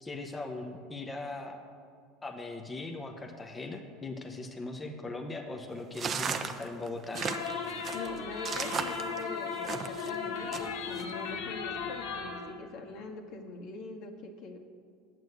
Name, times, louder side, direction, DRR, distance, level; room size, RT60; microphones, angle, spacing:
voice 1, 0.0-1.6 2.2-7.2, left 2 dB, 15° left, 3 dB, 1.0 m, -39 dB
sound 1, 5.9-10.1 10.5-11.0, right 6 dB, 35° right, 0.8 m, -35 dB
sound 2, 7.2-12.5, left 5 dB, 80° left, 1.4 m, -36 dB
voice 2, 7.9-14.6, left 2 dB, 60° left, 2 dB, 1.7 m, -43 dB
9.3 x 8.0 x 7.9 m, 2.3 s
supercardioid pair, 115°, 0 cm